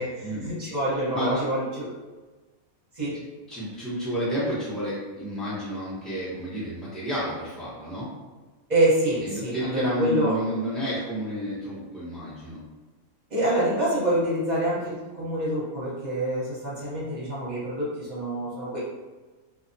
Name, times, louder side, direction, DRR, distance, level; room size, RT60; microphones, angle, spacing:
voice 1, 0.0-1.9 2.9-3.2 8.7-10.4 13.3-18.8, right 1 dB, 35° right, -8 dB, 0.9 m, -26 dB
voice 2, 3.5-8.1 9.2-12.6, equal, ahead, -9 dB, 0.5 m, -30 dB
2.5 x 2.0 x 2.6 m, 1.3 s
omnidirectional pair, 1.5 m